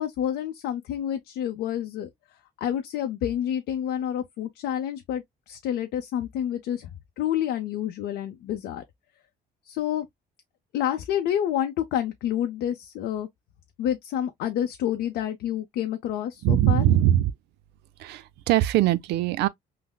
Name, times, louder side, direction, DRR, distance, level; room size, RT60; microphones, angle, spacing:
voice 1, 0.0-2.1 2.6-6.9 7.2-8.8 9.7-10.1 10.7-13.3 13.8-16.8, left 10 dB, 80° left, 0.5 m, -28 dB
voice 2, 16.4-17.3 18.0-19.5, right 13 dB, 80° right, 0.5 m, -21 dB
5.6 x 2.0 x 2.3 m
cardioid pair, 110°, 17 cm